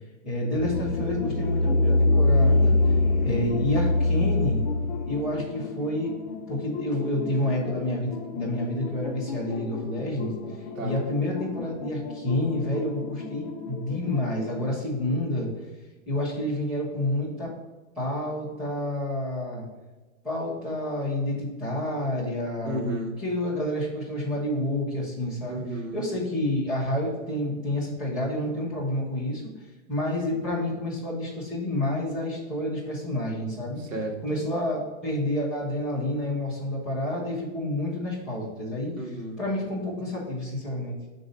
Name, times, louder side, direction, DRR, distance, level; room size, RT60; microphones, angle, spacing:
voice 1, 0.2-2.7 3.2-4.6 5.0-6.1 6.5-15.5 16.1-17.5 18.0-19.6 20.2-22.9 23.2-25.6 25.9-29.4 29.9-33.8 34.2-38.9 39.4-41.0, left 1 dB, ahead, -9 dB, 0.5 m, -29 dB
sound 1, 0.5-14.8, left 2 dB, 35° left, 0.8 m, -27 dB
voice 2, 22.6-23.1 25.5-26.0 33.8-34.2 39.0-39.4, right 1 dB, 70° right, -1 dB, 1.9 m, -32 dB
6.3 x 3.9 x 5.2 m, 1.2 s
supercardioid pair, 175°, 41 cm